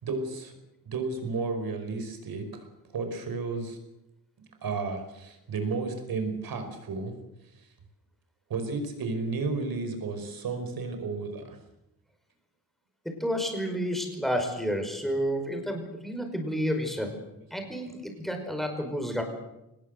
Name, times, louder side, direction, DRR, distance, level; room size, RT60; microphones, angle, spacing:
voice 1, 0.0-0.5 0.9-2.7 2.9-3.8 4.6-7.1 7.6-7.7 8.5-11.6, right 4 dB, 75° right, 7 dB, 5.4 m, -32 dB
voice 2, 13.1-17.2 17.5-19.2, equal, ahead, 4 dB, 5.3 m, -30 dB
24.0 x 20.0 x 8.0 m, 0.90 s
wide cardioid pair, 155°, 36 cm